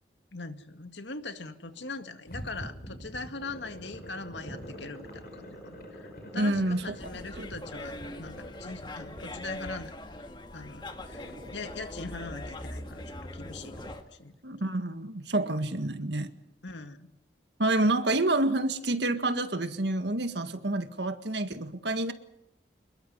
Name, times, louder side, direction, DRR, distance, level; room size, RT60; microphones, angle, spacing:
voice 1, 0.3-9.9 10.5-13.8 14.2-14.4 16.6-17.1, left 3 dB, 80° left, 8 dB, 2.0 m, -41 dB
Growling, 1.6-3.3 3.8-6.8 7.2-14.0 14.3-14.4, equal, ahead, 7.0 m, -49 dB
sound 1, 2.3-9.7, equal, 50° left, 6.0 m, -46 dB
voice 2, 6.3-6.8 7.4-7.5 14.4-16.3 17.6-22.1, right 2 dB, 70° right, 9 dB, 1.8 m, -28 dB
sound 2, 7.0-14.0, left 1 dB, 25° left, 1.8 m, -42 dB
27.0 x 21.5 x 5.6 m, 0.82 s
head